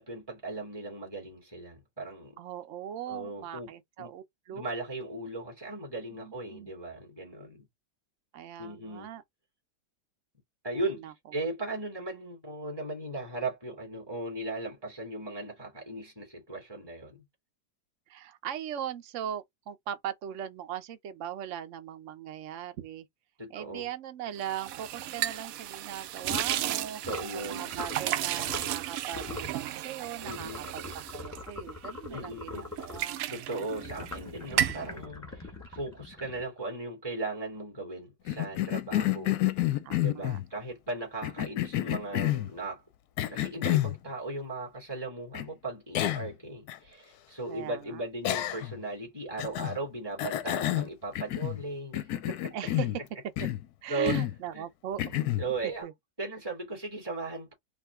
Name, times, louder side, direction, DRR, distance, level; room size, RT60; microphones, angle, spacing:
voice 1, 0.0-2.4 3.1-3.7 4.0-4.1 4.5-7.6 8.6-9.1 10.6-17.3 23.4-23.9 27.0-27.7 30.2-30.6 32.1-33.0 33.3-42.8 43.3-52.7 53.9-54.2 54.5-54.6 55.4-55.9 56.2-57.5, right 2 dB, 15° right, 2.4 m, -37 dB
voice 2, 2.4-4.8 6.1-6.7 8.3-9.2 10.8-11.1 18.1-23.0 23.5-27.0 27.4-33.2 39.8-40.4 47.5-48.0 52.5-52.9 53.8-55.2 55.8-55.9, right 10 dB, 55° right, 0.9 m, -39 dB
sound 1, 24.4-32.2 32.5-34.2 34.5-34.9, right 12 dB, 75° right, 0.8 m, -34 dB
sound 2, 26.2-26.6 27.0-27.3 27.7-28.0 28.4-28.8 29.1-29.5 30.2-33.1 33.8-36.6, left 3 dB, 10° left, 1.5 m, -42 dB
Cough, 38.3-40.5 41.2-42.5 43.2-44.0 45.3-45.5 45.9-46.3 46.7-46.8 48.2-48.8 49.4-49.8 50.2-51.6 51.9-53.0 53.4-53.7 54.1-54.4 55.0-55.5, left 14 dB, 70° left, 1.0 m, -29 dB
5.0 x 2.7 x 3.7 m
omnidirectional pair, 2.0 m